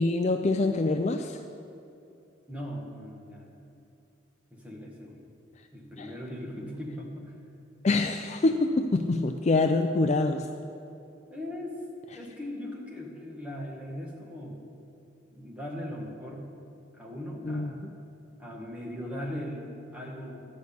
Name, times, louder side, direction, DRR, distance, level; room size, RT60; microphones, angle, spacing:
voice 1, 0.0-1.4 6.0-6.1 7.8-10.5 17.4-17.9, left 2 dB, 35° left, 5 dB, 0.4 m, -25 dB
voice 2, 2.5-3.5 4.5-5.3 5.7-7.4 11.3-11.8 12.1-14.6 15.3-16.5 16.9-17.9 18.4-20.5, left 1 dB, 5° right, -2 dB, 1.6 m, -39 dB
12.0 x 6.3 x 8.5 m, 2.7 s
head